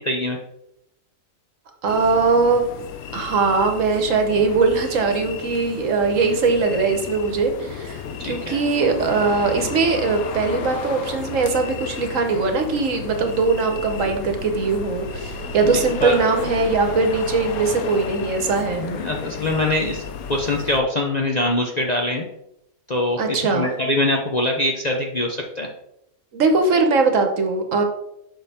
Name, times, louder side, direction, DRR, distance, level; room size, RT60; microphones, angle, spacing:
voice 1, 0.1-0.4 8.2-8.6 15.6-16.2 18.8-20.0 20.3-22.3 22.9-25.7, left 1 dB, 40° left, 0 dB, 0.6 m, -23 dB
voice 2, 1.8-2.6 3.1-18.9 23.2-23.7 26.3-27.8, right 4 dB, 65° right, 5 dB, 1.3 m, -20 dB
sound 1, 1.9-20.8, left 5 dB, 85° left, 1.1 m, -33 dB
5.8 x 5.2 x 4.2 m, 0.81 s
omnidirectional pair, 1.5 m